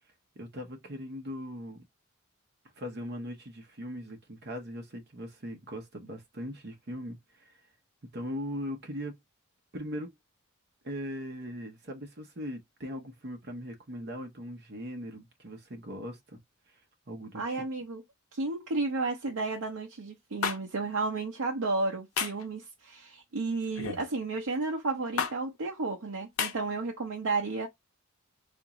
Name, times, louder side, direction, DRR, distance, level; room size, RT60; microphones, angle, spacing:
voice 1, 0.4-1.8 2.8-7.5 8.1-9.1 9.7-10.1 10.8-16.4 17.1-17.6, equal, 50° right, 0.9 m, -39 dB
voice 2, 17.3-18.0 18.3-27.7, right 3 dB, 85° right, 0.6 m, -32 dB
sound 1, 20.4-20.6 22.2-22.4 23.8-24.1 25.2-25.3 26.4-26.5, left 6 dB, 85° left, 0.6 m, -30 dB
3.6 x 2.5 x 3.0 m
head